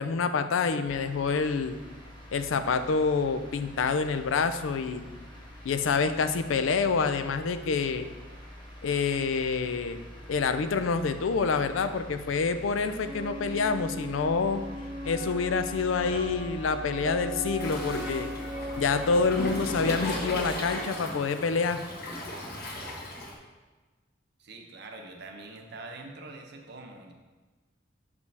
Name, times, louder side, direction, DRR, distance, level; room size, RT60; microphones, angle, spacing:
voice 1, 0.0-1.8 2.3-5.1 5.6-8.1 8.8-10.0 10.3-14.6 15.1-18.3 18.8-21.8, left 5 dB, 85° left, 10 dB, 0.4 m, -27 dB
sound 1, 0.9-20.5, equal, 25° left, 1.3 m, -45 dB
sound 2, 13.0-21.0, equal, 5° right, 0.6 m, -38 dB
Waves surf, 17.6-23.3, left 1 dB, 50° left, 1.3 m, -37 dB
voice 2, 24.4-27.1, right 3 dB, 60° right, 3 dB, 0.8 m, -44 dB
6.7 x 5.2 x 3.3 m, 1.3 s
head